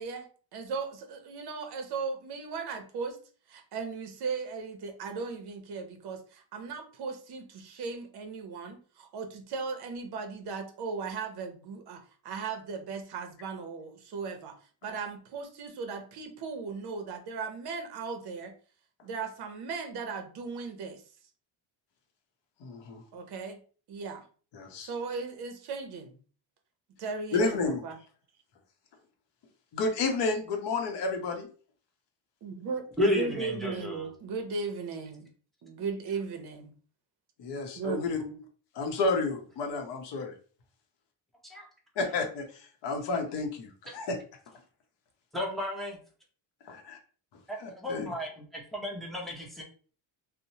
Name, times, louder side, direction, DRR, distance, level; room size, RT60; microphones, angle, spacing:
voice 1, 0.0-3.2 3.5-18.5 19.0-21.0 23.1-23.6 23.9-24.2 24.8-26.2 27.0-28.0 32.4-35.3 35.6-36.7 37.8-38.4, right 4 dB, 50° right, 6 dB, 0.6 m, -37 dB
voice 2, 22.6-23.0 24.5-24.9 27.3-27.8 29.7-31.5 37.4-38.2 38.8-40.3 42.0-42.5 42.8-44.2 46.7-47.0 47.6-48.1, left 3 dB, 55° left, 4 dB, 0.7 m, -31 dB
voice 3, 33.0-34.1 45.3-46.0 47.5-49.6, left 1 dB, ahead, -2 dB, 0.6 m, -32 dB
2.9 x 2.0 x 2.6 m, 0.41 s
cardioid pair, 145°, 49 cm